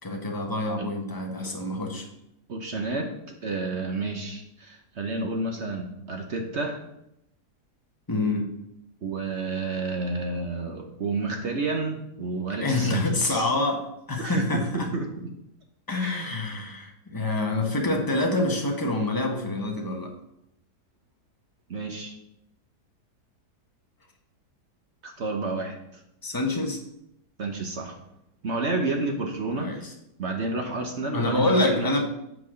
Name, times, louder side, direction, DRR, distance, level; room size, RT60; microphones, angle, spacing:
voice 1, 0.0-2.1 8.1-8.5 12.6-14.9 15.9-20.1 26.2-26.8 29.5-29.9 31.1-32.0, left 2 dB, 15° left, 1 dB, 1.1 m, -26 dB
voice 2, 2.5-3.1 3.4-6.8 9.0-13.5 14.2-15.1 15.9-16.4 21.7-22.1 25.0-26.0 27.4-28.0 28.4-29.9 30.2-31.9, right 3 dB, 50° right, 3 dB, 1.1 m, -30 dB
8.1 x 4.7 x 6.3 m, 0.82 s
omnidirectional pair, 1.8 m